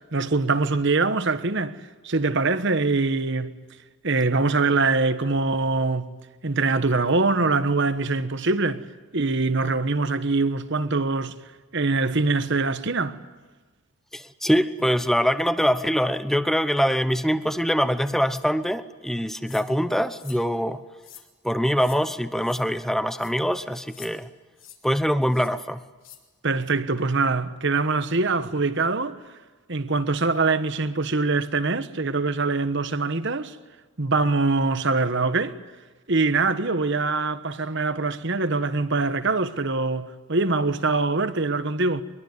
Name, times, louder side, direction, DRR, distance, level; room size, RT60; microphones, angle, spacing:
voice 1, 0.1-1.8 2.0-3.6 4.0-6.1 6.4-8.8 9.1-11.3 11.7-13.2 26.4-29.2 29.7-33.6 34.0-35.6 36.1-42.0, right 3 dB, 55° right, 1.3 m, -23 dB
voice 2, 14.1-20.8 21.4-24.3 24.8-25.8, equal, ahead, 0.9 m, -23 dB
sound 1, 19.5-19.7 20.2-20.4 21.0-21.3 21.8-22.0 22.4-22.6 23.1-23.3 23.9-24.1 24.6-24.8 25.3-25.5 26.0-26.2, left 10 dB, 60° left, 3.9 m, -46 dB
23.5 x 22.5 x 9.6 m
head